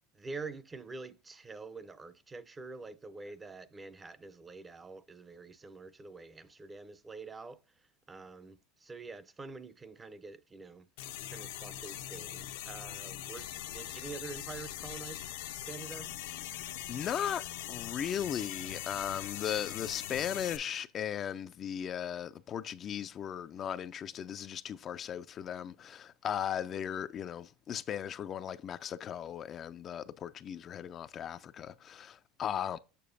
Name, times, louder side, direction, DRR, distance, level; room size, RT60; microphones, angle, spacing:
voice 1, 0.1-7.6 8.1-10.9 11.3-13.5 13.7-15.3 15.6-16.1, right 4 dB, 15° right, 0.5 m, -46 dB
sound 1, 11.0-20.6, left 13 dB, 85° left, 0.6 m, -41 dB
voice 2, 16.9-17.4 17.7-32.8, left 9 dB, 35° left, 0.3 m, -37 dB
6.8 x 6.3 x 2.5 m
supercardioid pair, 125°, 0 cm